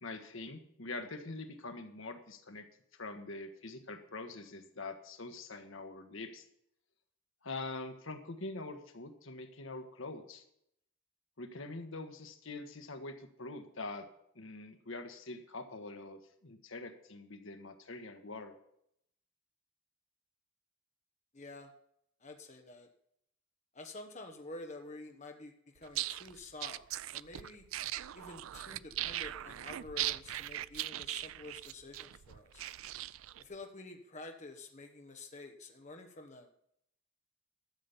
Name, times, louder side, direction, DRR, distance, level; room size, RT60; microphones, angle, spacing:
voice 1, 0.0-2.7 2.9-6.5 7.4-10.4 11.4-14.1 14.3-18.5, left 2 dB, 70° left, 7 dB, 1.4 m, -44 dB
voice 2, 21.3-21.7 22.2-22.9 23.7-26.8 27.1-27.6 28.1-32.7 33.4-36.6, left 2 dB, 35° left, 4 dB, 1.0 m, -49 dB
sound 1, 25.8-33.4, right 14 dB, 75° right, 0.4 m, -39 dB
13.0 x 7.1 x 7.1 m, 0.73 s
head